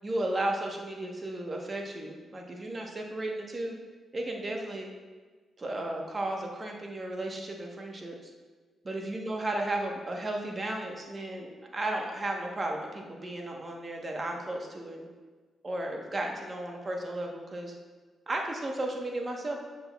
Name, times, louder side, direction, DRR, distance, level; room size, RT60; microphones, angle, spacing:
voice 1, 0.0-3.8 4.1-4.9 5.6-8.2 8.8-15.1 15.6-17.7 18.3-19.5, right 1 dB, 35° right, 1 dB, 1.1 m, -34 dB
7.7 x 6.5 x 2.3 m, 1.4 s
cardioid pair, 60°, 0 cm